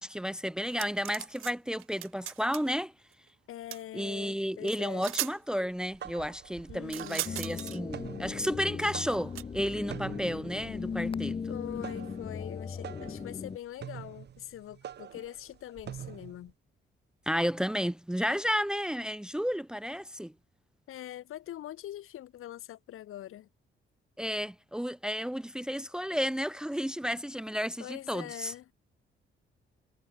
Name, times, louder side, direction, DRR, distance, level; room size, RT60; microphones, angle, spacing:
voice 1, 0.0-2.9 3.9-11.4 17.3-20.3 24.2-28.5, equal, 5° right, 0.8 m, -32 dB
sound 1, 0.7-1.5 1.8-2.7 3.7-3.8 4.7-4.8 5.0-5.4 6.9-7.8 9.3-9.4, right 15 dB, 75° right, 0.5 m, -37 dB
voice 2, 3.5-5.1 6.7-7.2 11.5-16.5 20.9-23.5 27.8-28.7, left 12 dB, 85° left, 4.6 m, -43 dB
sound 2, 5.7-16.5, right 9 dB, 55° right, 4.0 m, -46 dB
sound 3, 7.2-13.6, left 5 dB, 25° left, 1.0 m, -37 dB
cardioid pair, 165°, 21 cm